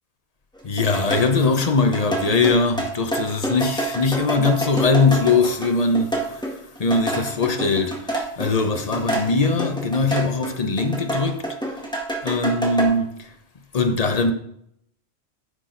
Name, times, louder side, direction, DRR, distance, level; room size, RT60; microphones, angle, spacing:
voice 1, 0.6-11.8 12.2-13.3 13.7-14.3, left 3 dB, 40° left, 0.9 m, -21 dB
sound 1, 0.6-10.5 10.8-12.9, right 1 dB, 5° left, 1.7 m, -27 dB
10.0 x 6.0 x 3.9 m
omnidirectional pair, 1.1 m